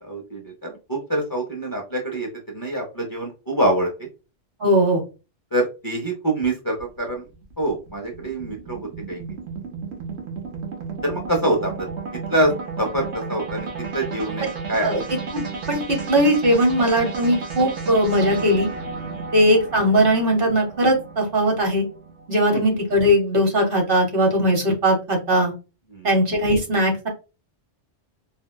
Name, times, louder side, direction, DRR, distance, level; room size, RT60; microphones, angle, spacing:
voice 1, 0.0-4.1 5.5-7.2 7.6-9.2 11.0-11.9 12.3-12.5 12.8-13.7 13.9-14.9 19.1-19.3 22.5-22.6 25.9-26.1, right 1 dB, 25° left, -1 dB, 0.5 m, -25 dB
voice 2, 4.6-5.0 14.8-15.0 15.3-18.7 19.3-21.8 22.3-25.5 26.0-27.1, equal, 55° right, 1 dB, 1.1 m, -19 dB
sound 1, 6.8-23.2, right 4 dB, 75° right, 1.1 m, -33 dB
4.3 x 2.2 x 2.2 m, 0.30 s
omnidirectional pair, 1.2 m